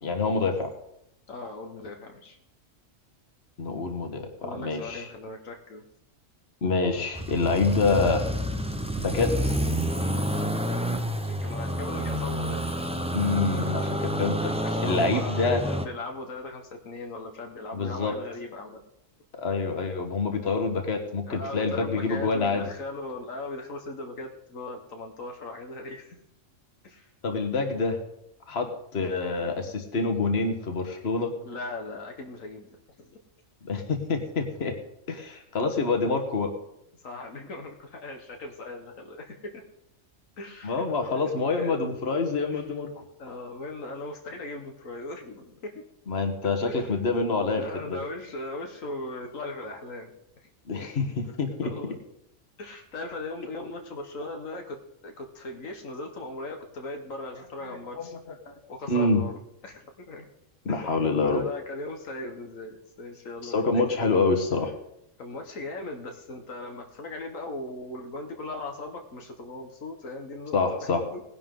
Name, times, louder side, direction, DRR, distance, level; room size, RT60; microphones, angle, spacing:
voice 1, 0.0-0.7 3.6-4.3 4.6-5.1 6.6-8.2 9.0-9.6 13.1-14.5 14.8-15.6 17.7-18.1 19.4-22.6 27.2-28.0 28.5-28.7 28.9-31.3 33.6-34.7 35.1-36.5 40.6-42.9 46.1-48.0 50.7-51.1 51.4-51.7 57.6-57.8 58.4-58.5 58.9-59.2 60.6-61.4 63.4-64.7 70.5-71.0, left 3 dB, 55° left, 5 dB, 1.7 m, -26 dB
voice 2, 1.3-2.4 4.4-5.8 10.3-10.5 11.2-12.7 14.6-18.8 21.3-26.2 26.8-27.1 29.0-29.1 31.4-33.2 35.3-35.4 37.0-39.7 40.4-40.9 41.1-41.8 42.5-42.7 43.2-45.8 46.7-47.0 47.5-50.5 50.7-50.9 51.6-52.0 52.6-58.1 58.7-60.3 60.7-63.8 65.2-71.2, left 2 dB, 85° left, 3 dB, 1.8 m, -39 dB
sound 1, 7.1-15.9, equal, 5° right, 0.8 m, -29 dB
18.5 x 11.0 x 3.8 m, 0.79 s
omnidirectional pair, 1.3 m